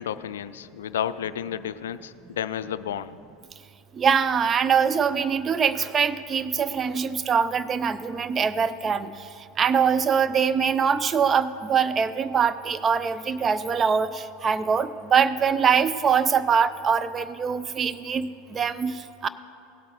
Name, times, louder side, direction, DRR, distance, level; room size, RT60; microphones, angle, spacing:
voice 1, 0.0-3.2, left 9 dB, 75° left, 14 dB, 0.3 m, -31 dB
voice 2, 4.0-9.1 9.6-19.3, right 6 dB, 30° right, 14 dB, 0.5 m, -23 dB
17.0 x 8.2 x 3.1 m, 2.7 s
figure-of-eight pair, 80°, 0 cm